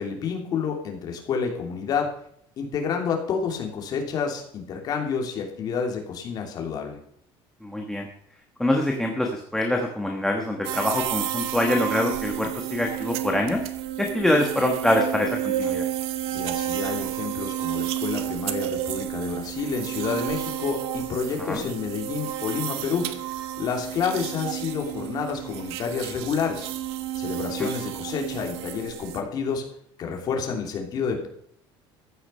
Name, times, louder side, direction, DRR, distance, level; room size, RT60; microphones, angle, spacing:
voice 1, 0.0-2.1 2.6-7.0 16.3-23.3 23.6-26.7 27.1-29.6 30.0-31.3, left 6 dB, 40° left, 2 dB, 3.0 m, -29 dB
voice 2, 7.6-8.1 8.6-13.6 14.0-15.9 21.4-21.6 27.6-27.7, left 1 dB, 5° left, 1 dB, 1.3 m, -25 dB
sound 1, 10.6-29.2, right 12 dB, 80° right, 1.3 m, -31 dB
14.5 x 9.7 x 5.6 m, 0.67 s
cardioid pair, 170°, 10 cm